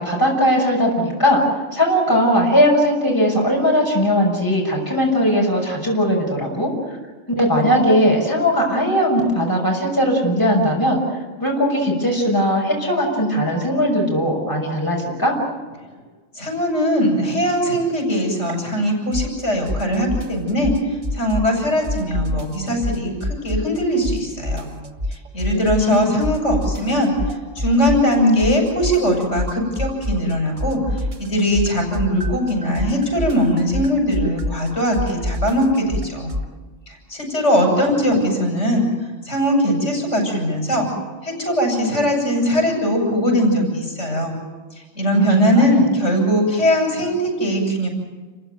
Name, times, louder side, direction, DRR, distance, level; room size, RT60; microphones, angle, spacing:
voice 1, 0.0-1.4 1.7-6.7 7.4-11.0 11.4-15.3 25.9-26.1 45.1-45.8, equal, 15° left, -2 dB, 6.1 m, -19 dB
voice 2, 16.3-24.7 25.1-36.3 36.9-38.9 39.2-40.9 41.2-44.3 44.8-47.9, equal, 75° left, 0 dB, 7.3 m, -20 dB
sound 1, 19.1-19.4 19.7-21.6 21.8-23.8 24.0-26.0 26.2-30.3 30.6-36.5, left 1 dB, 30° right, 1.3 m, -26 dB
29.5 x 15.5 x 9.2 m, 1.4 s
omnidirectional pair, 1.2 m